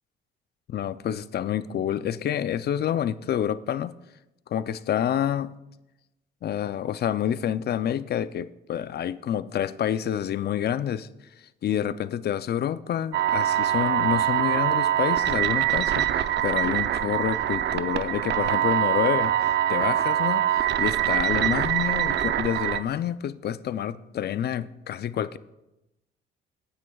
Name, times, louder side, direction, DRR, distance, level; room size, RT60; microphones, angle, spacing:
voice 1, 0.7-3.9 4.5-5.5 6.4-11.1 11.6-25.4, left 10 dB, 55° left, 14 dB, 0.5 m, -28 dB
sound 1, 13.1-22.8, right 11 dB, 60° right, 0.6 m, -24 dB
18.5 x 9.8 x 2.3 m, 0.97 s
cardioid pair, 90°, 20 cm